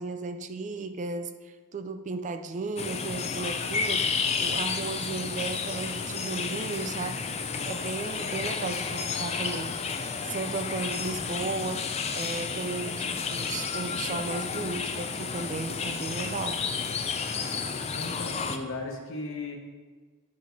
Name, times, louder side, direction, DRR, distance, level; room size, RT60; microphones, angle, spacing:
voice 1, 0.0-7.3 7.6-9.8 10.2-16.6, right 3 dB, 35° right, 9 dB, 0.4 m, -35 dB
sound 1, 2.8-18.6, left 5 dB, 30° left, 0.4 m, -31 dB
voice 2, 17.9-19.6, left 3 dB, 60° left, 2 dB, 1.1 m, -36 dB
9.3 x 5.2 x 3.9 m, 1.5 s
head